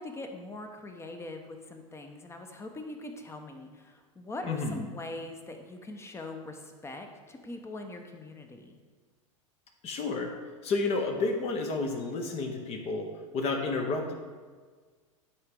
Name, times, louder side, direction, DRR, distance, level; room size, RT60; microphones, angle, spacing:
voice 1, 0.0-8.8, left 2 dB, 15° left, 5 dB, 0.9 m, -42 dB
voice 2, 4.4-4.8 9.8-10.3 10.6-14.1, left 3 dB, 35° left, 3 dB, 1.1 m, -31 dB
11.0 x 4.8 x 3.8 m, 1.5 s
hypercardioid pair, 90°, 17 cm